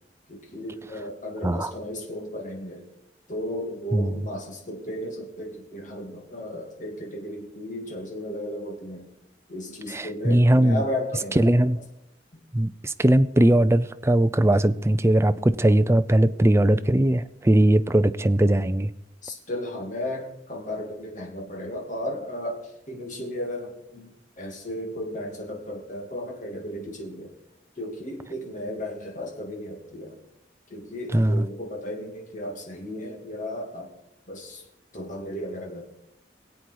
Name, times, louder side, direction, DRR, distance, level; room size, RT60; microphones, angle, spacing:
voice 1, 0.3-2.8 3.3-9.1 9.5-11.7 12.3-12.4 19.2-24.1 24.4-27.3 27.8-30.2 30.7-33.9 34.3-34.6 34.9-35.9, left 1 dB, 45° left, 1 dB, 2.8 m, -34 dB
voice 2, 9.9-10.8 11.4-11.8 12.5-18.9 31.1-31.4, right 1 dB, 15° right, 12 dB, 0.5 m, -20 dB
23.0 x 8.4 x 4.7 m, 0.81 s
head